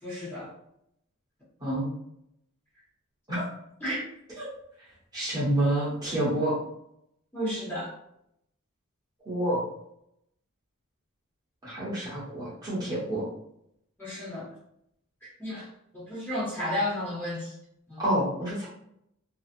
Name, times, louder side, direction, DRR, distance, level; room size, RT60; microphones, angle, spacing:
voice 1, 0.0-0.5 3.8-4.0 7.3-7.9 14.0-14.5 15.4-15.7 15.9-17.6 17.9-18.0, left 1 dB, 10° left, -10 dB, 0.9 m, -32 dB
voice 2, 5.1-6.5 9.3-9.6 11.6-13.2 18.0-18.7, right 1 dB, 20° right, -9 dB, 1.0 m, -28 dB
2.7 x 2.3 x 2.5 m, 0.76 s
head